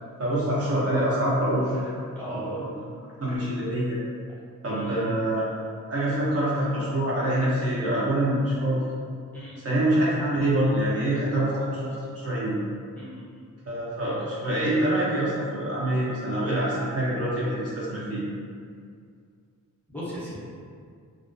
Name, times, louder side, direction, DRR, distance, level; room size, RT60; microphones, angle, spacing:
voice 1, 0.2-1.9 2.3-2.7 3.2-4.0 4.6-5.6 5.9-8.8 9.6-12.6 13.7-18.2, right 1 dB, 45° right, -7 dB, 0.5 m, -25 dB
voice 2, 2.1-2.6 4.7-5.2 9.3-9.6 13.0-13.4 19.9-20.4, equal, 5° left, -10 dB, 0.6 m, -37 dB
2.3 x 2.1 x 2.4 m, 2.2 s
wide cardioid pair, 155°, 33 cm